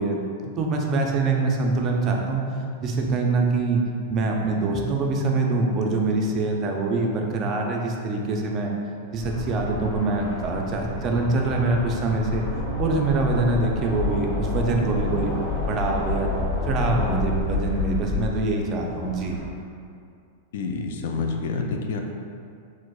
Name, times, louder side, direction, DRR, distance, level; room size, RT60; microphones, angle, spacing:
voice 1, 0.0-2.4 2.8-3.8 4.1-8.7 9.1-12.4 12.8-16.3 16.7-19.4, right 3 dB, 30° right, 0 dB, 0.4 m, -24 dB
sound 1, 9.2-19.5, left 2 dB, 45° left, 1.2 m, -29 dB
voice 2, 20.5-22.0, left 4 dB, 65° left, 3 dB, 0.3 m, -28 dB
4.6 x 2.0 x 2.3 m, 2.4 s
supercardioid pair, 155°, 0 cm